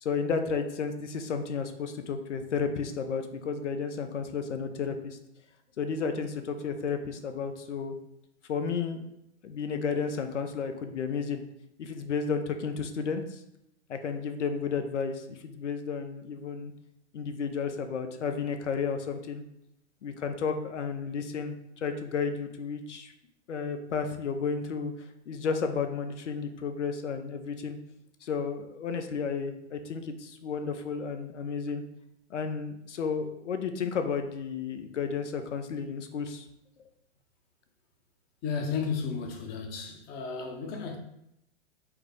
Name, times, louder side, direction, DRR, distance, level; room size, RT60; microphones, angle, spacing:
voice 1, 0.0-5.2 5.8-7.9 8.5-9.0 9.4-11.4 11.8-13.4 13.9-16.7 17.1-19.4 20.0-23.1 23.5-24.9 25.3-27.8 28.2-31.8 32.3-36.4, left 5 dB, 80° left, 0.7 m, -32 dB
voice 2, 38.4-41.0, left 5 dB, 30° left, 0.7 m, -33 dB
4.8 x 2.1 x 4.6 m
hypercardioid pair, 115°, 35 cm